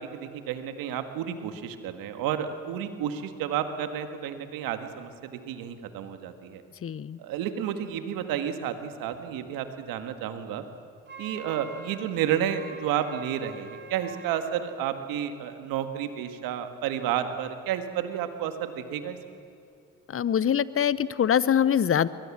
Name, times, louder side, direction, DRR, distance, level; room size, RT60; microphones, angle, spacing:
voice 1, 0.0-6.6 7.2-10.6 11.2-19.2, right 9 dB, 80° right, 8 dB, 1.7 m, -31 dB
voice 2, 6.8-7.2 20.1-22.1, left 9 dB, 40° left, 18 dB, 0.9 m, -23 dB
Wind instrument woodwind instrument, 11.1-14.4, right 3 dB, 35° right, 4.6 m, -44 dB
22.5 x 19.0 x 7.4 m, 2.6 s
supercardioid pair, 60°, 34 cm